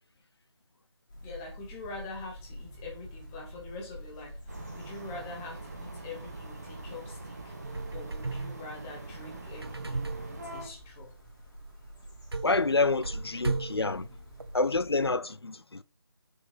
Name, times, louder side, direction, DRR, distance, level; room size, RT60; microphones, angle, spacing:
sound 1, 1.1-15.1, left 1 dB, 40° left, 3.0 m, -49 dB
voice 1, 1.2-11.1, left 3 dB, 5° left, 0.7 m, -45 dB
sound 2, 4.5-10.7, right 2 dB, 40° right, 1.8 m, -43 dB
sound 3, 7.6-14.6, right 3 dB, 65° right, 0.8 m, -37 dB
voice 2, 12.4-14.1 14.5-15.8, left 3 dB, 65° left, 0.6 m, -28 dB
6.7 x 5.0 x 4.5 m
figure-of-eight pair, 160°, 14 cm